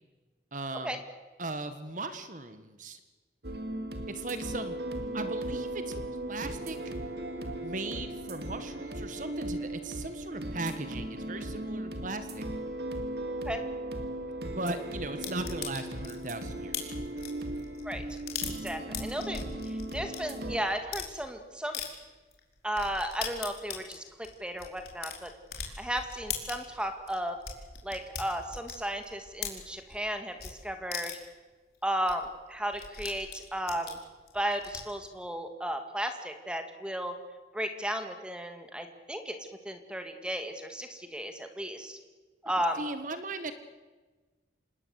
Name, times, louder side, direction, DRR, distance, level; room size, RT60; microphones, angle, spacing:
voice 1, 0.5-1.0 1.4-3.0 4.1-4.8 5.1-5.9 6.3-6.8 7.6-12.4 14.4-16.9 42.8-43.5, right 2 dB, 45° right, 10 dB, 1.5 m, -38 dB
sound 1, 3.4-20.6, right 1 dB, 65° right, 2.6 m, -37 dB
sound 2, 15.2-20.2 20.7-21.1 21.7-21.9 22.3-22.4 22.7-30.1 30.4-30.5 30.9-31.3 31.7-31.8 32.1-32.2 32.4-35.0, left 8 dB, 60° left, 4.7 m, -40 dB
voice 2, 18.6-19.4 19.9-21.8 22.6-25.3 25.8-27.4 27.8-31.2 31.8-34.0 34.3-37.2 37.5-39.4 39.6-42.0 42.4-42.8, equal, 5° right, 6 dB, 2.2 m, -34 dB
27.0 x 20.0 x 8.1 m, 1.3 s
head